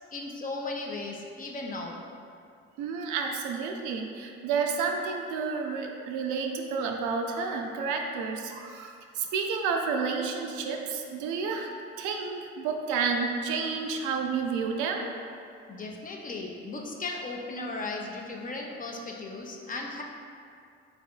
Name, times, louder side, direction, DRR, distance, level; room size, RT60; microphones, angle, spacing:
voice 1, 0.1-2.0 15.7-20.0, left 3 dB, 25° left, 0 dB, 0.5 m, -36 dB
voice 2, 2.8-11.7 12.0-15.1, right 5 dB, 65° right, 3 dB, 0.4 m, -30 dB
3.6 x 3.3 x 2.3 m, 2.4 s
hypercardioid pair, 55°, 32 cm